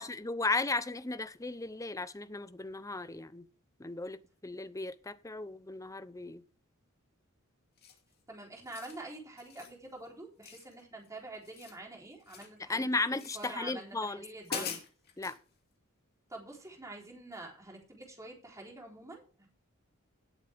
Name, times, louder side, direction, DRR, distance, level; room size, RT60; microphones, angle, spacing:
voice 1, 0.0-3.5 3.8-6.4 12.7-14.2 14.5-14.8 15.2-15.4, left 3 dB, 15° left, 0.7 m, -35 dB
sound 1, 7.8-8.1 8.6-9.0 9.4-9.8 10.4-11.1 11.3-12.6 13.1-13.5 14.0-14.1 14.4-15.4, left 6 dB, 50° left, 2.6 m, -43 dB
voice 2, 8.3-12.9 13.3-14.8 16.3-19.5, right 2 dB, 15° right, 3.6 m, -46 dB
17.5 x 8.2 x 3.5 m
head